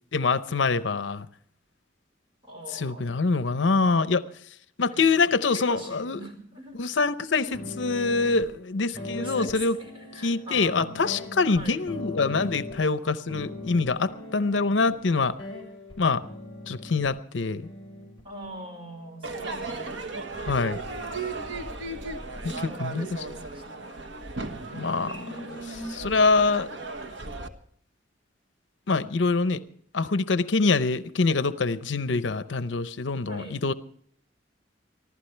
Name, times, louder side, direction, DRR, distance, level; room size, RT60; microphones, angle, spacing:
voice 1, 0.1-1.3 2.7-4.2 4.8-6.2 6.8-7.5 7.8-9.8 10.2-15.3 16.0-16.2 16.7-17.7 20.5-20.8 22.8-23.1 24.7-25.2 26.0-26.7 28.9-29.6 29.9-33.7, left 4 dB, 75° left, 13 dB, 0.7 m, -24 dB
voice 2, 2.4-3.1 4.9-5.1 5.5-6.8 7.4-7.6 8.9-11.1 11.5-11.8 18.2-19.9 22.4-23.9 25.2-26.1 33.3-33.6, right 1 dB, 30° right, 3 dB, 5.1 m, -42 dB
sound 1, 7.5-8.5 8.9-13.0 13.3-17.1 17.6-19.3 19.7-20.4 20.7-22.9, left 2 dB, 30° left, 5.1 m, -41 dB
Crowd / Fireworks, 19.2-27.5, right 3 dB, 75° right, 1.4 m, -36 dB
24.5 x 15.0 x 3.3 m, 0.62 s
head